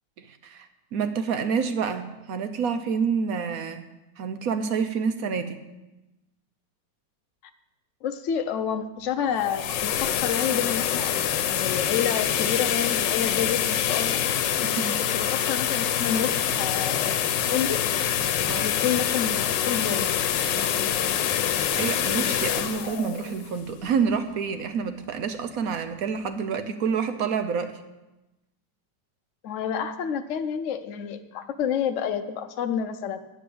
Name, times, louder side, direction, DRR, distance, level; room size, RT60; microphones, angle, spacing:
voice 1, 0.2-3.8 4.2-5.6 14.6-15.0 18.5-18.7 21.8-27.8, right 6 dB, 65° right, 9 dB, 1.0 m, -28 dB
voice 2, 8.0-11.1 11.5-14.2 15.1-17.2 17.5-17.8 18.6-20.1 29.4-33.2, left 8 dB, 65° left, 7 dB, 0.7 m, -29 dB
sound 1, 9.2-24.2, left 9 dB, 80° left, 1.4 m, -26 dB
10.0 x 7.5 x 7.0 m, 1.0 s
omnidirectional pair, 1.9 m